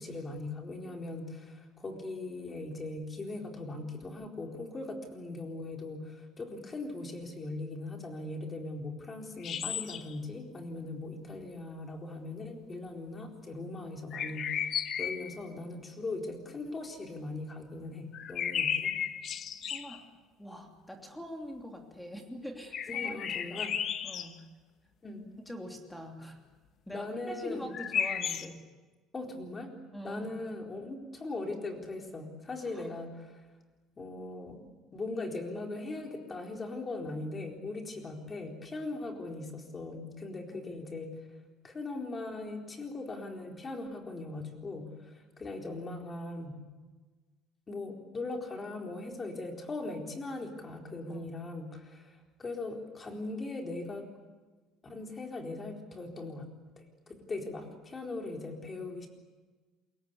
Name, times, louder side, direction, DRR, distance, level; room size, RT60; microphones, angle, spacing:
voice 1, 0.0-19.0 22.9-23.7 25.0-25.2 26.9-27.8 29.1-29.7 30.0-33.4 34.0-34.6 34.9-41.2 41.6-46.6 47.7-54.1 54.8-56.5 56.8-59.1, left 2 dB, 20° left, 2 dB, 4.2 m, -40 dB
sound 1, 9.4-10.2 14.1-15.4 18.1-20.0 22.7-24.3 27.7-28.5, left 8 dB, 40° left, 1.4 m, -34 dB
voice 2, 19.7-20.0 20.4-23.1 23.5-23.7 24.0-24.4 25.5-26.4 26.9-28.6 29.9-30.3 32.6-32.9 40.5-40.9 51.1-51.3, equal, 5° left, 3 dB, 2.9 m, -44 dB
28.5 x 22.5 x 8.4 m, 1.3 s
cardioid pair, 165°, 0 cm